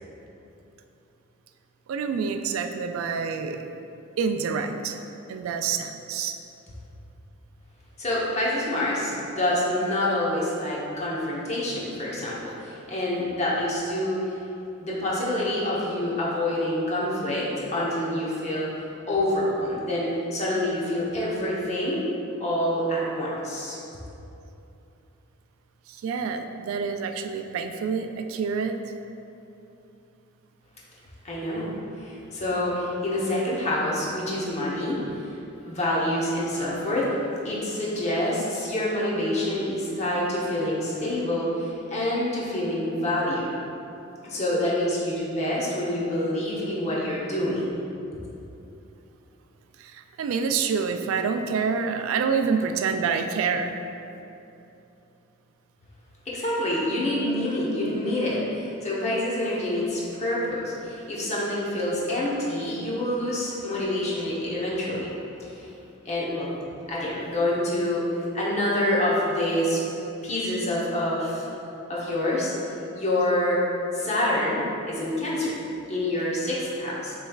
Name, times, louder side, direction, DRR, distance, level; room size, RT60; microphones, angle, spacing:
voice 1, 1.9-3.6 4.2-5.0 5.3-6.4 25.9-28.8 49.8-53.8, right 5 dB, 80° right, 7 dB, 0.3 m, -27 dB
voice 2, 8.0-14.4 14.8-18.7 19.0-22.0 22.4-23.8 31.2-31.7 32.0-35.0 35.6-37.1 37.4-43.5 44.2-47.8 56.3-65.1 65.4-65.7 66.0-66.5 66.9-68.0 68.3-69.8 70.2-71.5 71.9-72.5 72.9-73.6 73.9-75.6 75.9-77.1, left 1 dB, 35° left, -6 dB, 0.9 m, -27 dB
6.5 x 3.1 x 2.3 m, 2.8 s
head